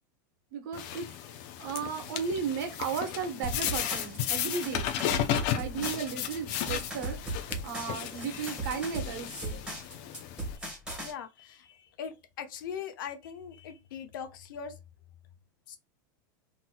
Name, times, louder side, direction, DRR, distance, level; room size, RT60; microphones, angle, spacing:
voice 1, 0.5-1.1 1.6-4.9 5.5-7.2 7.6-9.6, right 6 dB, 75° right, 1.1 m, -35 dB
sound 1, 0.7-10.6, left 10 dB, 55° left, 0.6 m, -34 dB
sound 2, 3.4-11.1, right 2 dB, 5° right, 1.5 m, -38 dB
voice 2, 10.5-14.8 15.7-15.8, left 7 dB, 85° left, 0.9 m, -41 dB
3.9 x 2.9 x 2.2 m
supercardioid pair, 145°, 11 cm